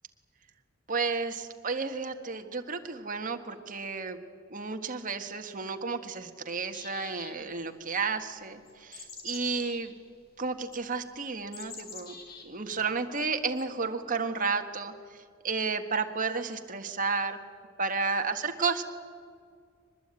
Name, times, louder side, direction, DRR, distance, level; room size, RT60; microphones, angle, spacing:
voice 1, 0.9-9.9 10.4-12.1 12.4-17.4 17.8-18.8, right 4 dB, 40° right, 6 dB, 1.6 m, -32 dB
Black-capped chickadee - Mesange a tete noire, 6.7-7.6 8.7-9.8 10.7-10.8 11.5-12.4 13.6-13.7, left 5 dB, 45° left, 3.6 m, -45 dB
23.5 x 20.5 x 9.0 m, 2.1 s
head